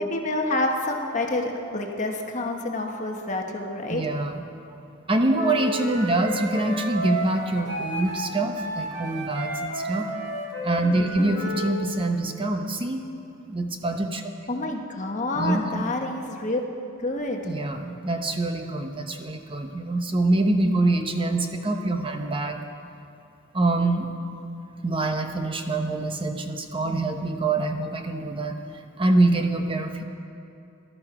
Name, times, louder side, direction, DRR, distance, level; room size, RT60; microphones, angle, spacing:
voice 1, 0.0-4.0 11.2-11.5 14.5-16.6 17.0-17.5, left 2 dB, 35° left, 2 dB, 1.2 m, -28 dB
voice 2, 3.9-4.4 5.1-10.1 10.6-13.0 13.5-14.2 15.3-15.8 17.4-22.6 23.5-24.1 24.8-28.6 29.0-30.0, right 2 dB, 25° right, 5 dB, 0.9 m, -25 dB
Wind instrument woodwind instrument, 5.3-11.8, right 1 dB, 65° right, 2.5 m, -32 dB
18.5 x 12.0 x 4.9 m, 2.6 s
head